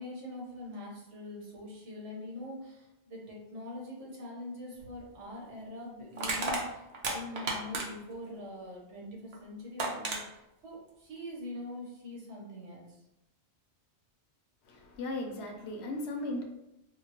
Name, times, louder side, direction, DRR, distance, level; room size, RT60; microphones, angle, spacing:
voice 1, 0.0-13.0, left 1 dB, 85° right, 1.3 m, -43 dB
Crushing, 4.8-5.0 6.2-8.1 9.3-9.4 9.8-10.2, right 3 dB, 65° right, 0.9 m, -33 dB
voice 2, 14.6-16.4, left 2 dB, 75° left, 0.9 m, -36 dB
4.4 x 2.0 x 2.9 m
omnidirectional pair, 1.2 m